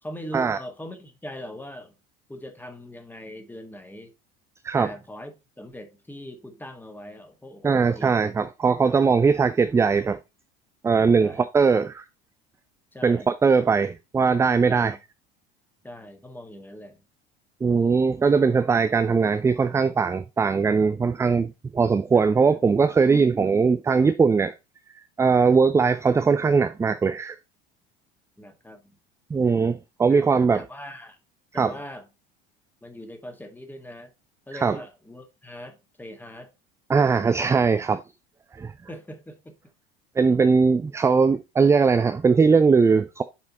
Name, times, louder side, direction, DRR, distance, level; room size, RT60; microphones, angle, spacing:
voice 1, 0.0-1.9 2.3-4.1 4.7-8.3 11.2-11.4 12.9-13.3 14.7-15.0 15.8-17.0 22.1-22.4 28.4-28.8 30.1-30.3 30.5-31.2 31.5-32.1 32.8-34.1 34.5-36.5 38.9-39.5, left 1 dB, 5° left, 1.6 m, -41 dB
voice 2, 7.6-10.2 10.8-12.0 13.0-15.0 17.6-24.5 25.2-27.4 29.3-30.6 31.5-31.7 34.5-34.8 36.9-38.0 38.6-38.7 40.2-43.2, right 5 dB, 10° right, 0.3 m, -20 dB
7.4 x 4.3 x 4.0 m
figure-of-eight pair, 70°, 30 cm